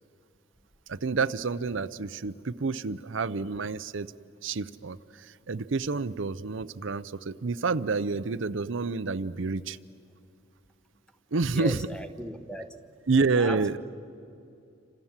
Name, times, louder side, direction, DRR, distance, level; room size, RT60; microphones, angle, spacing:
voice 1, 0.9-4.1 4.4-9.8 11.3-11.8 13.1-13.8, right 4 dB, 70° right, 13 dB, 0.6 m, -29 dB
voice 2, 11.4-12.8 13.3-13.7, equal, 5° left, 9 dB, 1.1 m, -37 dB
29.0 x 26.5 x 7.4 m, 2.5 s
head